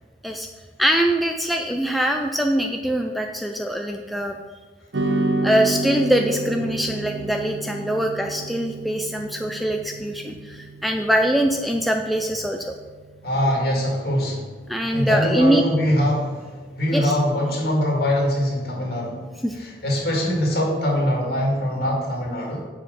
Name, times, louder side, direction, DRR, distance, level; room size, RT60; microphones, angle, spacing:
voice 1, 0.8-4.4 5.4-12.7 14.7-15.6 16.9-17.2 19.4-19.5, right 1 dB, ahead, 3 dB, 0.4 m, -23 dB
sound 1, 4.9-13.5, right 2 dB, 85° right, 0.6 m, -30 dB
voice 2, 13.2-14.4 14.9-19.2 19.6-22.6, equal, 60° left, -2 dB, 2.2 m, -23 dB
7.4 x 4.9 x 5.2 m, 1.4 s
head